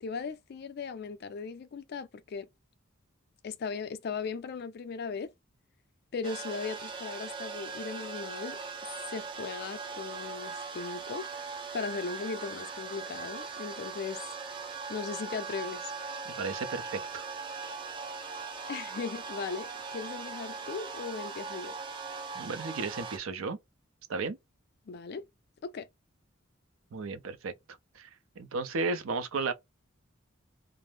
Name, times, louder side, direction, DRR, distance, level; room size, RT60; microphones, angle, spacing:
voice 1, 0.0-2.5 3.4-5.3 6.1-8.6 9.1-11.3 11.7-14.2 14.9-15.9 18.7-21.7 24.9-25.3 25.6-25.9, left 5 dB, 50° left, 0.4 m, -38 dB
sound 1, 6.2-23.2, right 5 dB, 25° right, 0.5 m, -40 dB
voice 2, 16.4-17.2 22.3-23.6 24.1-24.4 26.9-27.5 28.0-28.1 28.4-29.5, right 4 dB, 85° right, 0.5 m, -34 dB
2.5 x 2.0 x 3.2 m
head